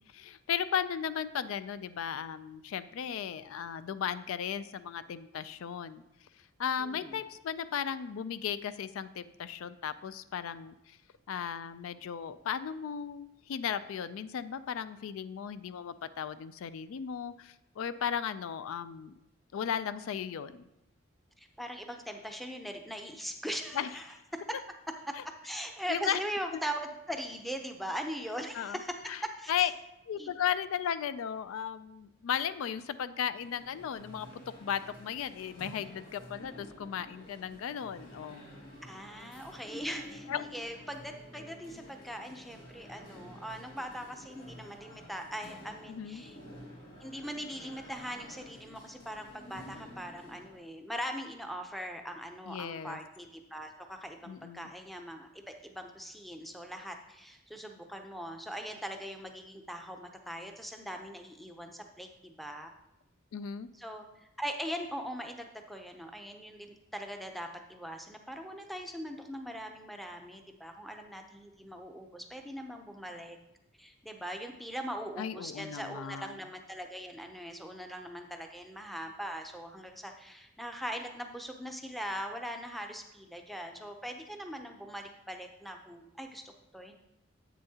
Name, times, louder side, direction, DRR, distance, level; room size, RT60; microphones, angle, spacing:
voice 1, 0.1-6.0 6.6-11.0 11.3-19.1 19.5-20.6 23.7-23.9 25.9-26.2 28.5-28.8 29.1-29.2 29.5-29.7 30.1-34.3 34.6-38.5 40.3-40.4 45.9-46.2 52.5-53.0 54.2-54.7 63.3-63.7 75.2-76.4, left 8 dB, 75° left, 14 dB, 0.3 m, -35 dB
voice 2, 6.8-7.2 21.4-24.4 25.1-25.2 25.4-29.0 29.2-29.7 30.2-30.3 38.8-46.4 47.0-62.7 63.7-64.1 64.4-73.4 73.8-86.9, equal, ahead, 4 dB, 0.5 m, -41 dB
sound 1, 33.3-50.6, left 1 dB, 40° left, 2.2 m, -50 dB
10.0 x 7.9 x 2.8 m, 0.89 s
head